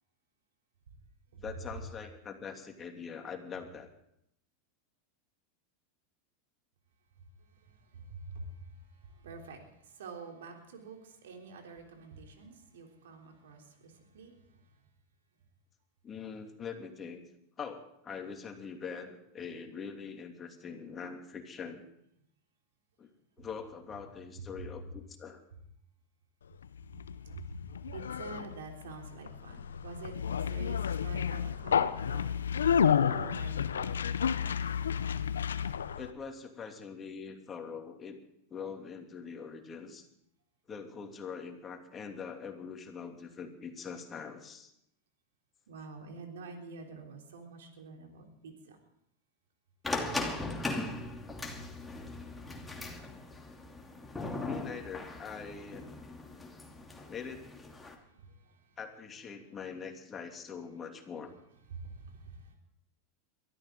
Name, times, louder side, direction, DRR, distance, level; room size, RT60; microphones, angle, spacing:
voice 1, 1.4-3.9 16.0-17.2 17.6-21.8 23.0-23.1 23.4-25.4 36.0-38.2 38.5-40.1 40.7-44.7 54.2-55.9 57.1-57.5 58.8-61.3, left 6 dB, 25° left, 3 dB, 2.9 m, -43 dB
voice 2, 7.4-14.8 24.6-24.7 27.2-32.4 32.9-34.1 45.7-48.8 51.5-51.7 58.0-58.8 61.7-62.5, right 4 dB, 75° right, 2 dB, 3.4 m, -47 dB
Conversation, 26.6-36.1, left 7 dB, 85° left, 0.7 m, -31 dB
sound 1, 49.8-57.9, left 2 dB, 10° left, 2.7 m, -39 dB
22.5 x 13.5 x 3.9 m, 0.75 s
hypercardioid pair, 100°, 0 cm